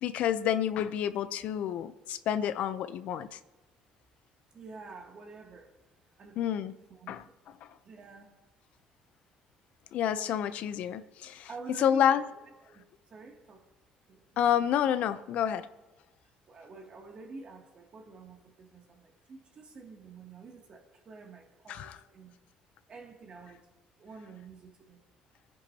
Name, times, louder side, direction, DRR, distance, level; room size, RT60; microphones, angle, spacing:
voice 1, 0.0-3.4 6.4-6.7 7.1-7.7 9.9-11.5 11.8-12.2 14.4-15.7 21.7-22.0, left 9 dB, 70° left, 0.7 m, -29 dB
voice 2, 4.5-5.7 6.2-6.4 6.9-7.1 7.8-8.3 11.5-12.4 12.7-12.8 13.1-13.6 14.1-14.2 14.5-14.7 16.5-22.4 22.9-23.6 24.0-25.0, right 4 dB, 45° right, 2.6 m, -48 dB
25.0 x 10.0 x 2.9 m
cardioid pair, 95°, 2 cm